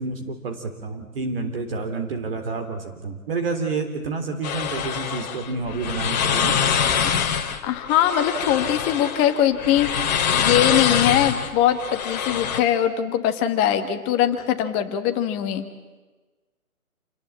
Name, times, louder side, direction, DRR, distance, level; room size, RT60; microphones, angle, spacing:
voice 1, 0.0-6.6, right 4 dB, 40° right, 5 dB, 3.4 m, -29 dB
sound 1, 4.4-12.6, left 7 dB, 30° left, 2.2 m, -24 dB
voice 2, 7.6-15.7, left 10 dB, 15° left, 7 dB, 1.4 m, -22 dB
28.5 x 20.0 x 8.6 m, 1.3 s
figure-of-eight pair, 145°, 43 cm